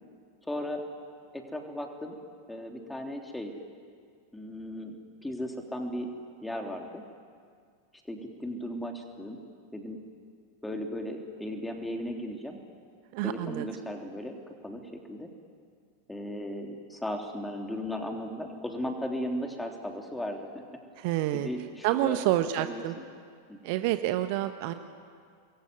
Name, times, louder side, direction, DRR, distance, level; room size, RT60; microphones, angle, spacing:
voice 1, 0.5-0.8 1.3-2.1 2.5-3.5 4.3-5.0 5.2-6.1 6.4-7.0 8.1-9.4 9.7-10.0 10.6-12.6 13.2-15.3 16.1-20.5 21.3-22.2 22.6-23.0 23.5-23.6, equal, 5° left, 3 dB, 3.4 m, -36 dB
voice 2, 13.1-13.7 21.0-21.5 21.8-22.9 23.6-24.7, right 14 dB, 45° right, 9 dB, 1.2 m, -28 dB
27.5 x 22.0 x 9.5 m, 2.1 s
figure-of-eight pair, 90°, 0 cm